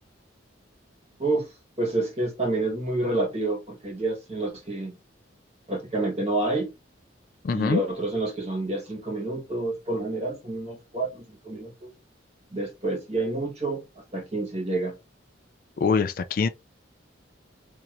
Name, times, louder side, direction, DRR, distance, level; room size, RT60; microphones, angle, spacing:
voice 1, 1.8-4.9 5.7-6.7 7.5-11.9 12.5-13.8 14.1-14.9, right 2 dB, 35° right, 1.4 m, -28 dB
voice 2, 7.4-7.8 15.8-16.5, left 5 dB, 45° left, 0.3 m, -23 dB
4.4 x 2.8 x 2.5 m
head